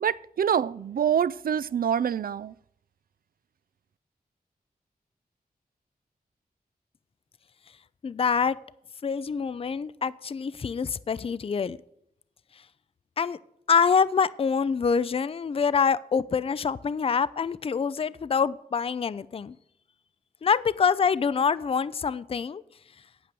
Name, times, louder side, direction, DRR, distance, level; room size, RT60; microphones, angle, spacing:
voice 1, 0.0-2.5, right 8 dB, 65° right, 0.4 m, -26 dB
voice 2, 8.0-8.6 9.0-11.8 13.2-13.4 13.7-19.6 20.4-22.6, left 6 dB, 35° left, 0.4 m, -25 dB
9.1 x 8.7 x 6.8 m
wide cardioid pair, 85°, 16 cm